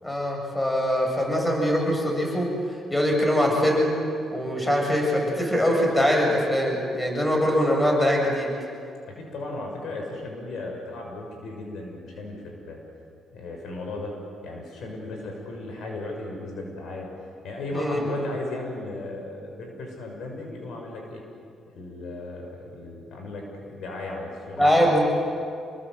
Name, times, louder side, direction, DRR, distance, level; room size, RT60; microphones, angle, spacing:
voice 1, 0.0-2.5 2.9-3.9 4.3-8.5 17.7-18.1 24.6-25.0, equal, 10° left, 0 dB, 7.4 m, -22 dB
voice 2, 9.1-12.8 13.3-14.1 14.4-17.1 17.4-21.2 21.7-24.8, left 2 dB, 75° left, 1 dB, 6.3 m, -36 dB
28.5 x 22.0 x 7.9 m, 2.4 s
cardioid pair, 90°, 0 cm